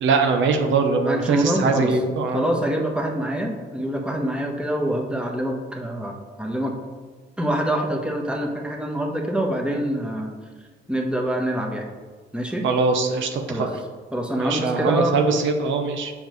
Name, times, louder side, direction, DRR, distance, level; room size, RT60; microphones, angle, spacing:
voice 1, 0.0-2.4 12.6-13.7 14.4-16.1, right 4 dB, 75° right, 4 dB, 0.7 m, -22 dB
voice 2, 1.0-2.0 2.3-6.8 7.4-10.3 10.9-11.8 12.3-12.6 13.5-13.7 14.1-15.2, right 1 dB, 5° right, 0 dB, 1.0 m, -25 dB
7.2 x 5.2 x 3.1 m, 1.4 s
cardioid pair, 90°, 20 cm